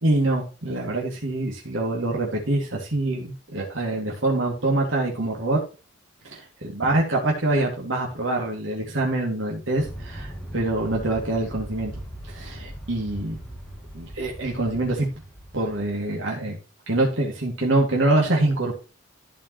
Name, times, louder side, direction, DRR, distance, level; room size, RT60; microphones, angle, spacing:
voice 1, 0.0-5.6 6.2-11.9 12.3-13.4 13.9-15.1 15.5-16.6 16.9-18.7, right 2 dB, 70° right, -1 dB, 2.5 m, -25 dB
Aircraft, 9.8-16.1, equal, 5° left, 2.6 m, -39 dB
14.5 x 5.3 x 3.1 m, 0.33 s
head